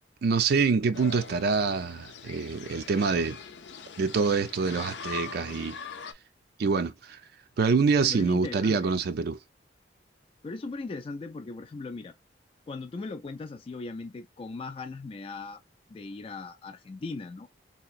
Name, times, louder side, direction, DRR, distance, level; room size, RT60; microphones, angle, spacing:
voice 1, 0.2-3.4 4.0-5.8 6.6-7.2 7.6-9.4, right 5 dB, 60° right, 0.4 m, -26 dB
sound 1, 0.9-6.1, left 6 dB, 80° left, 0.6 m, -42 dB
voice 2, 8.0-8.9 10.4-12.2 12.7-15.6 15.9-17.5, left 3 dB, 30° left, 0.3 m, -38 dB
3.3 x 2.9 x 2.4 m
head